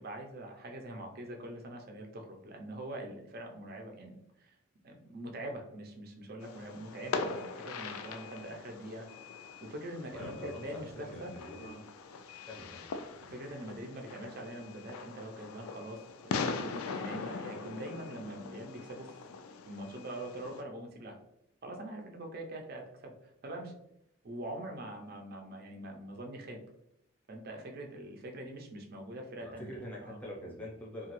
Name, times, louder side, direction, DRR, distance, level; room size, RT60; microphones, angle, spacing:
voice 1, 0.0-4.6 4.8-9.1 9.6-11.3 11.6-11.8 13.2-19.2 19.7-21.2 21.6-23.1 23.4-23.7 24.2-26.6 27.3-29.7 30.0-30.2, right 1 dB, 45° right, 2 dB, 0.5 m, -43 dB
Fireworks, 6.4-20.6, left 4 dB, 90° left, 0.3 m, -41 dB
voice 2, 10.1-11.8 12.5-12.8 29.4-31.1, left 1 dB, 5° left, -3 dB, 0.6 m, -44 dB
2.9 x 2.3 x 3.0 m, 0.78 s
head